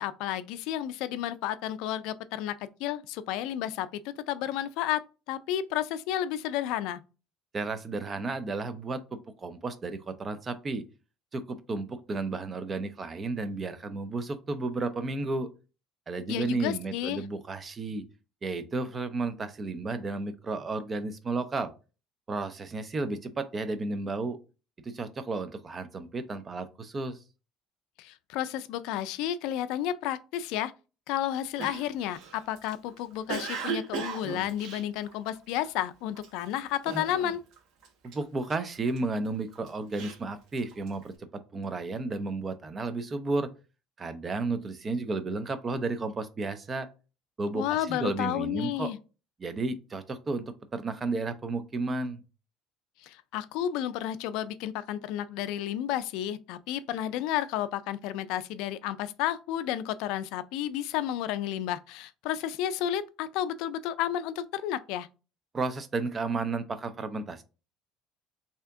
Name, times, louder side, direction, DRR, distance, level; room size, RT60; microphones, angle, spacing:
voice 1, 0.0-5.0 5.3-7.0 16.3-17.2 28.0-30.7 31.1-37.4 47.5-49.0 53.0-65.1, left 11 dB, 75° left, 0.3 m, -32 dB
voice 2, 7.5-10.8 11.3-15.5 16.1-18.0 18.4-21.7 22.3-24.4 24.8-27.2 38.0-41.1 41.5-43.5 44.0-46.9 47.4-48.9 49.4-52.2 65.5-67.4, right 3 dB, 25° right, 0.5 m, -32 dB
Cough, 31.6-35.7 36.2-36.5 36.9-37.6 37.8-39.0 39.5-41.0, right 5 dB, 65° right, 0.9 m, -37 dB
3.4 x 2.8 x 3.4 m
cardioid pair, 140°, 0 cm